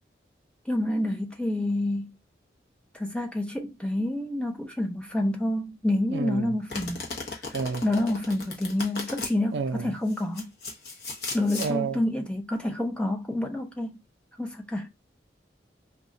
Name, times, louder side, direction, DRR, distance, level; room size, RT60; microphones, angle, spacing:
voice 1, 0.7-2.1 2.9-7.0 7.8-10.5 11.3-14.0 14.4-14.9, left 1 dB, 5° left, 0.5 m, -28 dB
voice 2, 6.1-6.6 7.5-7.9 9.5-10.0 11.6-12.0, right 5 dB, 80° right, 0.4 m, -30 dB
Domestic sounds home sounds, 6.7-9.3 10.1-11.7, left 3 dB, 60° left, 0.9 m, -36 dB
2.3 x 2.3 x 3.8 m
head